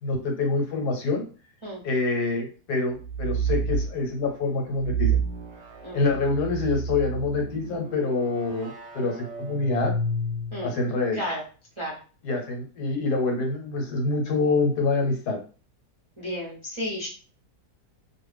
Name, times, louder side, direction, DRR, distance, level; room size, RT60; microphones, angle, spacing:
voice 1, 0.0-1.2 1.8-5.2 5.9-9.9 10.6-11.2 12.2-15.4, left 3 dB, 75° left, 2 dB, 1.3 m, -26 dB
sound 1, 3.0-3.9 4.8-10.8, right 4 dB, 55° right, 0.9 m, -30 dB
voice 2, 16.2-17.1, equal, 25° right, -5 dB, 0.7 m, -32 dB
2.6 x 2.3 x 3.3 m, 0.37 s
omnidirectional pair, 1.7 m